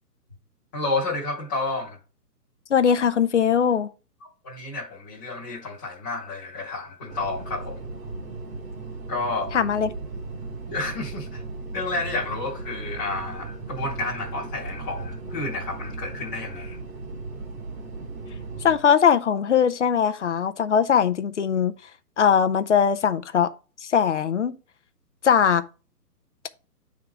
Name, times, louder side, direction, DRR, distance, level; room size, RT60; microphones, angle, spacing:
voice 1, 0.7-2.0 4.4-7.8 9.1-9.5 10.7-11.4 11.7-16.8, left 2 dB, 10° left, 1.0 m, -30 dB
voice 2, 2.7-3.9 9.5-9.9 18.6-21.7 22.2-23.5 23.8-24.6 25.2-25.6, left 7 dB, 50° left, 0.5 m, -20 dB
sound 1, 7.1-18.8, right 3 dB, 55° right, 1.6 m, -36 dB
9.7 x 3.7 x 3.3 m
hypercardioid pair, 170°, 48 cm